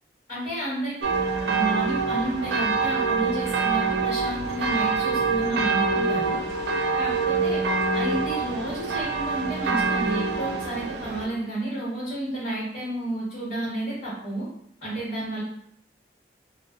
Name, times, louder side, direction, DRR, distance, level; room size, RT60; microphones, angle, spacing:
voice 1, 0.3-1.1 1.4-6.4 7.0-7.6 7.9-14.5 14.8-15.4, right 1 dB, 50° left, -10 dB, 1.3 m, -31 dB
sound 1, 1.0-11.3, right 4 dB, 70° right, 0.3 m, -25 dB
2.6 x 2.0 x 2.3 m, 0.68 s
head